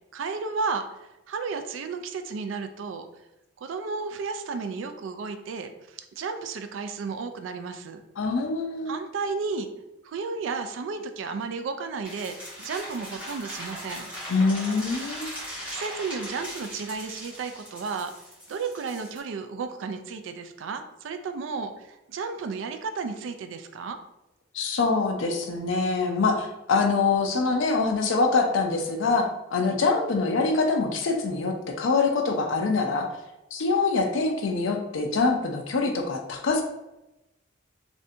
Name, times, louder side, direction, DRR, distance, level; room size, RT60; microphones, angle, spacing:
voice 1, 0.1-3.1 3.6-8.0 8.9-9.7 10.0-14.1 15.7-18.1 18.5-24.0 29.7-29.8, right 4 dB, 75° right, 8 dB, 0.3 m, -33 dB
voice 2, 8.2-8.9 14.3-15.3 24.5-33.1 33.5-36.6, left 4 dB, 75° left, 3 dB, 0.5 m, -24 dB
sound 1, 12.0-19.2, equal, 5° right, 1.5 m, -39 dB
3.2 x 2.6 x 2.6 m, 0.94 s
head